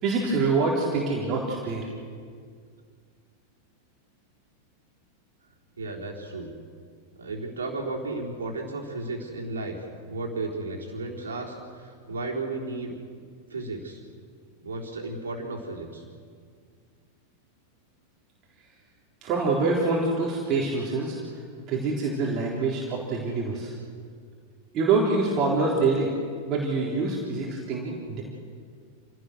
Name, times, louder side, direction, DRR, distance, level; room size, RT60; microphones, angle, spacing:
voice 1, 0.0-1.9 19.2-21.2 21.7-23.7 24.7-26.1 26.5-28.2, right 3 dB, 35° right, -3 dB, 3.9 m, -25 dB
voice 2, 5.8-6.5 7.2-9.8 10.1-12.9 13.5-14.0 14.6-16.0, right 2 dB, 70° right, -1 dB, 3.9 m, -34 dB
28.5 x 17.0 x 6.5 m, 2.1 s
figure-of-eight pair, 90°, 0 cm